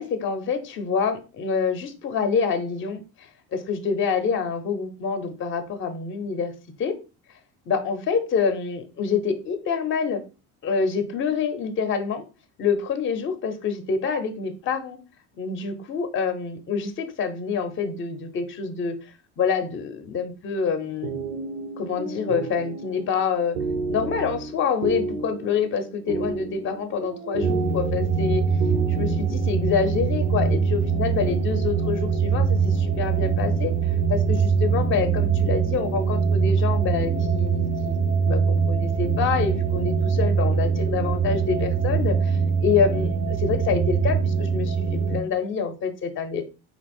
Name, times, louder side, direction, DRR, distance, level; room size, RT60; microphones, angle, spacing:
voice 1, 0.0-6.5 6.8-7.0 7.7-10.2 10.6-12.2 12.6-15.0 15.4-21.1 21.8-23.6 23.9-28.4 28.9-33.7 34.1-38.0 38.2-46.4, left 6 dB, 35° left, 9 dB, 0.7 m, -26 dB
sound 1, 20.8-29.3, right 4 dB, 85° right, 0.8 m, -32 dB
sound 2, 27.4-45.2, right 5 dB, 20° right, 0.5 m, -23 dB
3.8 x 2.9 x 4.2 m, 0.33 s
cardioid pair, 140°, 34 cm